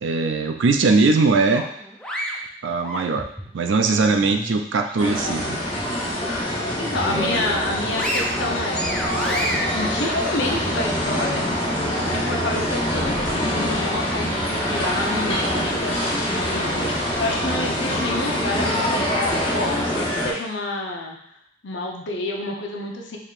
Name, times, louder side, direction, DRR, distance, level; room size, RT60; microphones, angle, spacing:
voice 1, 0.0-1.6 2.6-3.3 3.5-5.6 7.1-7.4, right 3 dB, 85° right, 6 dB, 0.4 m, -20 dB
sound 1, 1.5-3.5 4.0-5.4 5.8-5.9 6.4-7.2 7.6-11.1, equal, 5° left, 0.4 m, -31 dB
sound 2, 5.0-20.3, equal, 25° left, 1.0 m, -24 dB
voice 2, 6.8-8.9 9.1-11.5 12.1-21.2 21.6-23.2, left 2 dB, 80° left, 0 dB, 0.7 m, -29 dB
4.5 x 3.6 x 2.5 m, 0.69 s
head